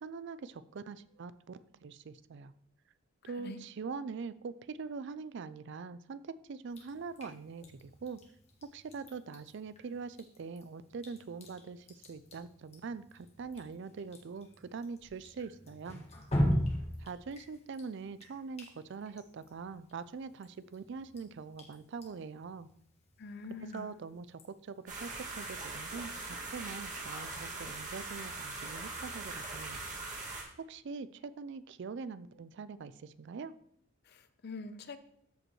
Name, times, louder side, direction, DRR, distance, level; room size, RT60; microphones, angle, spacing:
voice 1, 0.0-2.5 3.2-8.2 8.6-16.0 17.0-22.7 23.7-29.8 30.6-33.6, right 5 dB, 55° right, 15 dB, 0.4 m, -43 dB
voice 2, 3.2-3.6 23.2-23.9 34.0-35.0, left 3 dB, 50° left, 11 dB, 0.6 m, -45 dB
Drip, 6.7-25.0, equal, 30° left, 1.6 m, -41 dB
sound 1, 24.9-30.4, right 3 dB, 35° right, 2.0 m, -41 dB
13.5 x 5.2 x 3.1 m, 0.72 s
head